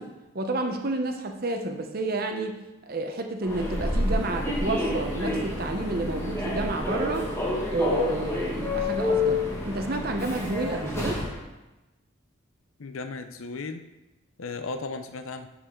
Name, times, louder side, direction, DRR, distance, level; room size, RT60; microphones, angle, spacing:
voice 1, 0.0-2.6 2.9-7.3 7.7-11.2, right 2 dB, 45° right, 5 dB, 0.9 m, -30 dB
Human voice / Subway metro underground, 3.4-11.4, left 2 dB, 15° left, 1.8 m, -28 dB
voice 2, 12.8-13.8 14.4-15.5, left 3 dB, 80° left, 8 dB, 0.7 m, -35 dB
12.5 x 5.0 x 3.8 m, 1.0 s
head